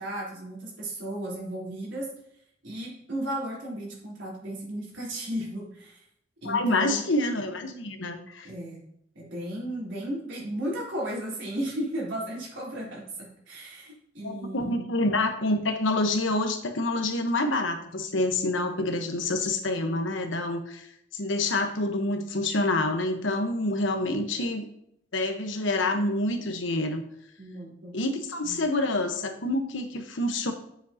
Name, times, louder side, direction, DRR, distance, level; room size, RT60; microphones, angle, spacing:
voice 1, 0.0-2.1 2.6-6.0 6.4-7.0 8.4-8.8 9.2-14.9 27.4-28.0 28.4-28.6, right 1 dB, 80° right, -4 dB, 3.6 m, -35 dB
voice 2, 6.4-8.5 14.2-20.9 21.1-24.7 25.1-27.0 27.9-30.5, left 2 dB, 90° left, 6 dB, 1.1 m, -27 dB
9.8 x 7.4 x 2.8 m, 0.74 s
head